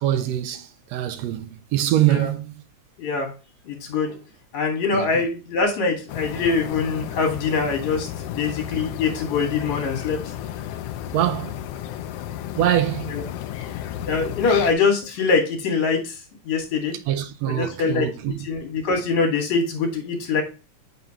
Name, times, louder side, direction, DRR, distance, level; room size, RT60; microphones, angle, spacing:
voice 1, 0.0-2.5 4.9-5.1 11.1-11.5 12.6-13.1 17.1-18.4, right 12 dB, 80° right, 1.6 m, -23 dB
voice 2, 3.0-3.3 3.6-4.2 4.5-10.3 13.1-13.2 14.1-16.2 16.4-17.0 17.5-20.4, left 4 dB, 70° left, 3.0 m, -23 dB
sound 1, 6.1-14.7, left 11 dB, 90° left, 1.3 m, -33 dB
8.1 x 4.1 x 2.9 m
omnidirectional pair, 3.3 m